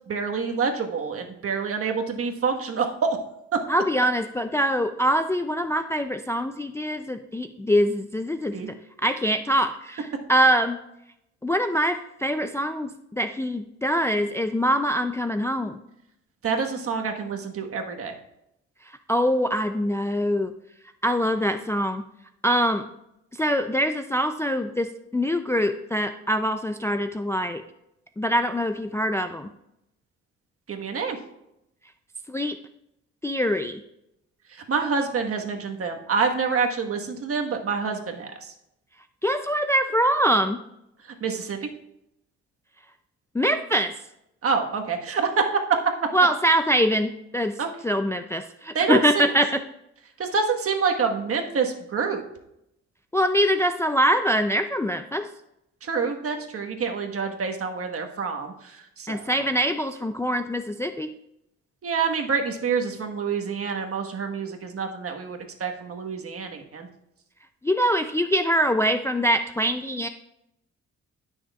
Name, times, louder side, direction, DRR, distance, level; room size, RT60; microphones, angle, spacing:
voice 1, 0.1-3.2 8.5-8.7 16.4-18.1 30.7-31.2 34.5-38.5 41.2-41.6 44.4-45.5 47.6-47.7 48.7-49.3 50.2-52.2 55.8-59.4 61.8-66.9, right 5 dB, 50° right, 3 dB, 1.4 m, -27 dB
voice 2, 3.7-8.6 9.0-10.8 11.4-15.8 19.1-20.5 21.0-22.0 22.4-22.8 23.4-27.6 28.2-29.5 32.3-32.6 33.2-33.8 39.2-40.6 43.3-44.0 46.1-47.6 47.8-49.6 53.1-55.3 59.1-61.1 67.6-70.1, equal, 10° left, 7 dB, 0.4 m, -24 dB
17.0 x 6.4 x 2.4 m, 0.83 s
cardioid pair, 90°, 30 cm